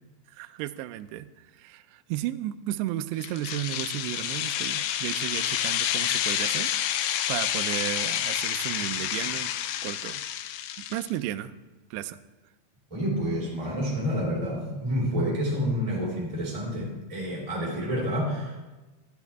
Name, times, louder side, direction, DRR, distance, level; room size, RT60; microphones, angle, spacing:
voice 1, 0.3-6.7 7.3-9.5 9.8-10.2 10.8-11.5 11.9-12.2, right 13 dB, 90° right, 10 dB, 2.4 m, -34 dB
sound 1, 3.2-11.1, left 11 dB, 80° left, 2.5 m, -29 dB
voice 2, 12.9-18.6, equal, 10° right, -4 dB, 2.0 m, -29 dB
13.0 x 12.5 x 3.5 m, 1.1 s
omnidirectional pair, 5.5 m